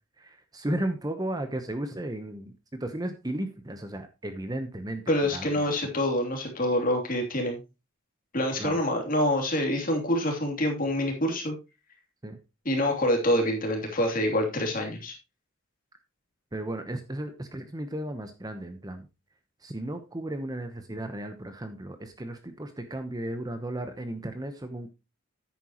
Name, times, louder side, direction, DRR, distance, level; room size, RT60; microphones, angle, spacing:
voice 1, 0.2-5.5 8.6-8.8 12.2-12.4 16.5-19.1 19.6-24.9, right 1 dB, 20° right, 8 dB, 0.9 m, -34 dB
voice 2, 5.1-7.6 8.3-11.5 12.6-15.1, left 1 dB, 40° left, 2 dB, 3.0 m, -26 dB
10.0 x 9.0 x 3.0 m, 0.26 s
head